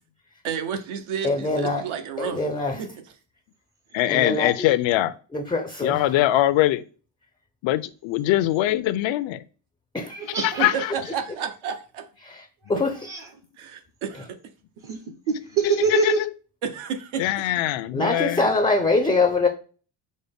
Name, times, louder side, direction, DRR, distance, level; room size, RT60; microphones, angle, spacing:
voice 1, 0.4-2.5 2.8-2.9 10.6-12.1 13.6-14.4 16.6-17.2, right 7 dB, 75° right, 0.9 m, -31 dB
voice 2, 1.2-1.8 2.2-2.8 4.1-4.7 5.3-6.0 9.9-10.2 12.2-12.4 12.7-12.9 17.9-19.5, left 3 dB, 10° left, 0.4 m, -23 dB
voice 3, 3.9-5.1 5.8-6.8 7.6-9.4 10.6-10.7 16.0-16.1 17.2-18.5, left 14 dB, 70° left, 0.5 m, -22 dB
voice 4, 10.2-10.8 12.6-13.4 14.8-16.2, right 6 dB, 45° right, 0.7 m, -27 dB
5.2 x 2.1 x 3.4 m
cardioid pair, 115°, 49 cm